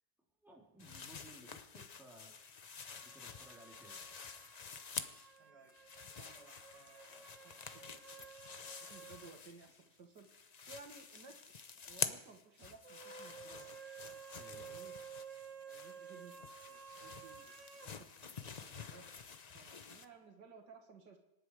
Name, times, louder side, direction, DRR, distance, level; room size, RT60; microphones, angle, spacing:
voice 1, 0.4-2.3 3.0-4.0 14.4-14.7, right 1 dB, ahead, -3 dB, 3.4 m, -59 dB
sound 1, 0.8-5.4 5.7-9.9 10.2-20.1, left 5 dB, 80° left, 0.3 m, -48 dB
sound 2, 2.8-9.4 9.7-9.8 12.8-17.9, right 7 dB, 50° right, 1.2 m, -54 dB
voice 2, 5.4-5.7 6.2-8.3 8.9-10.3 10.7-13.7 14.6-14.9 15.7-16.4 16.7-19.0 19.5-21.2, right 4 dB, 75° right, 3 dB, 2.2 m, -58 dB
26.0 x 10.5 x 4.9 m, 0.90 s
omnidirectional pair, 1.9 m